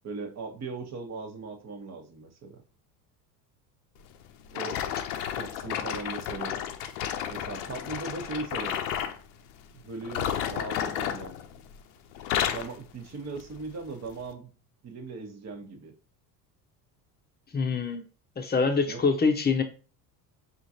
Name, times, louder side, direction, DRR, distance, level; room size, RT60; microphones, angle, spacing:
voice 1, 0.0-2.6 4.5-4.8 5.4-6.6 7.3-8.8 9.7-11.3 12.3-14.5 14.8-15.9 18.9-19.0, right 3 dB, 35° right, 4 dB, 1.1 m, -38 dB
sound 1, 4.5-9.2 10.0-11.8 12.1-12.8 13.4-13.6 14.2-14.3, left 9 dB, 70° left, 0.7 m, -32 dB
voice 2, 17.5-18.0 18.4-19.6, left 4 dB, 20° left, 6 dB, 0.8 m, -25 dB
4.9 x 2.5 x 2.7 m, 0.37 s
hypercardioid pair, 75°, 48 cm